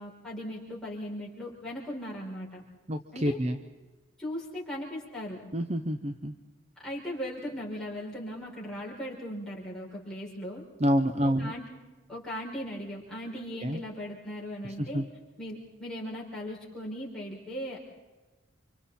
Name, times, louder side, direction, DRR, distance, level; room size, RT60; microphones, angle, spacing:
voice 1, 0.0-2.6 3.1-3.4 4.2-5.4 6.8-10.6 11.4-11.6 12.1-15.0 15.4-17.8, equal, 5° left, -6 dB, 5.7 m, -38 dB
voice 2, 2.9-3.6 5.5-6.3 10.8-11.5 13.6-13.8 14.6-15.1, equal, 30° right, 9 dB, 0.6 m, -28 dB
29.5 x 25.5 x 4.3 m, 1.2 s
head